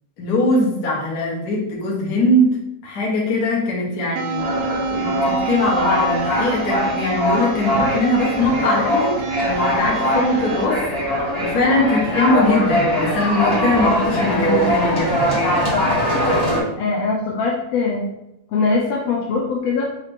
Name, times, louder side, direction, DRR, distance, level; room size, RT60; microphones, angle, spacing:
voice 1, 0.2-2.6 2.8-9.1 9.4-10.8 11.4-15.4, left 1 dB, 55° left, -4 dB, 1.1 m, -21 dB
sound 1, 4.2-10.7, right 5 dB, 80° right, 1.8 m, -28 dB
sound 2, 4.4-16.6, left 1 dB, 30° left, 0.6 m, -21 dB
voice 2, 16.8-18.1 18.5-19.8, left 4 dB, 75° left, -2 dB, 1.6 m, -22 dB
4.8 x 2.8 x 3.4 m, 0.86 s
omnidirectional pair, 3.3 m